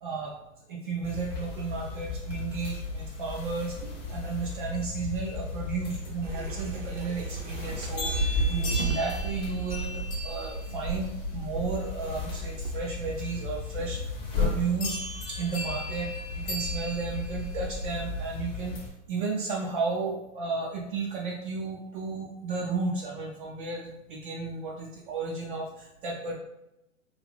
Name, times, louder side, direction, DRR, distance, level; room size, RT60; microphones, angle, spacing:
voice 1, 0.0-0.3 0.7-15.0 15.4-18.8 19.1-26.4, right 4 dB, 40° right, -2 dB, 0.5 m, -33 dB
sound 1, 1.0-18.9, left 3 dB, 25° left, 0.8 m, -34 dB
sound 2, 6.2-12.7, right 5 dB, 65° right, 0.9 m, -34 dB
2.5 x 2.4 x 3.2 m, 0.88 s
hypercardioid pair, 120°, 40 cm